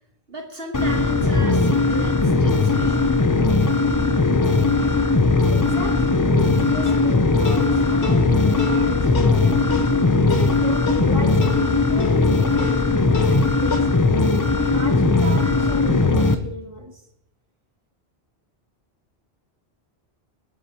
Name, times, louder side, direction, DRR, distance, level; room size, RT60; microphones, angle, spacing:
voice 1, 0.3-3.1, right 2 dB, 65° right, 1 dB, 1.6 m, -35 dB
sound 1, 0.7-16.3, left 3 dB, 25° left, 0.5 m, -19 dB
voice 2, 5.5-9.7 10.2-14.1 14.7-17.1, right 1 dB, 25° right, 1 dB, 2.1 m, -35 dB
sound 2, 6.9-13.8, left 5 dB, 80° left, 1.4 m, -32 dB
23.0 x 8.5 x 2.9 m, 0.84 s
omnidirectional pair, 1.1 m